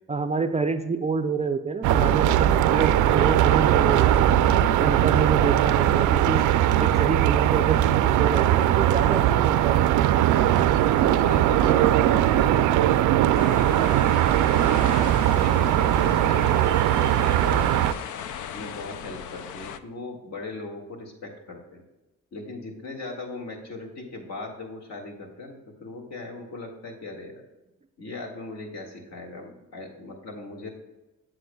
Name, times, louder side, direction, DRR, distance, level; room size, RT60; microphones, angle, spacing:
voice 1, 0.1-4.4 4.8-6.5 6.8-9.8, right 5 dB, 25° right, 8 dB, 0.4 m, -28 dB
sound 1, 1.8-17.9, right 12 dB, 80° right, 0.4 m, -20 dB
voice 2, 5.0-5.3 10.5-10.7 11.0-14.9 15.3-18.1 18.5-21.8 22.3-27.4 28.0-30.7, left 2 dB, 60° left, 0 dB, 2.0 m, -38 dB
sound 2, 13.3-19.8, left 8 dB, 80° left, 0.5 m, -38 dB
7.7 x 7.7 x 2.3 m, 1.0 s
cardioid pair, 90°, 30 cm